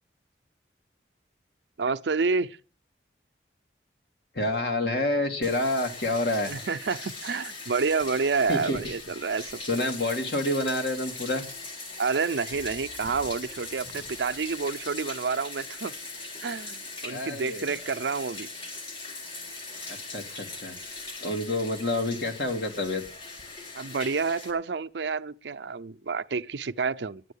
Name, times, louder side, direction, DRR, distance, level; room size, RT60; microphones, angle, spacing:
voice 1, 1.8-2.6 6.5-9.6 12.0-15.9 16.4-18.5 23.7-27.2, right 4 dB, 85° right, 0.6 m, -29 dB
voice 2, 4.3-6.5 8.5-8.8 9.7-11.4 17.1-17.7 19.9-23.0, left 1 dB, 65° left, 2.5 m, -28 dB
Bathtub (filling or washing), 5.4-24.5, left 3 dB, 35° left, 3.5 m, -40 dB
10.5 x 9.2 x 8.3 m
head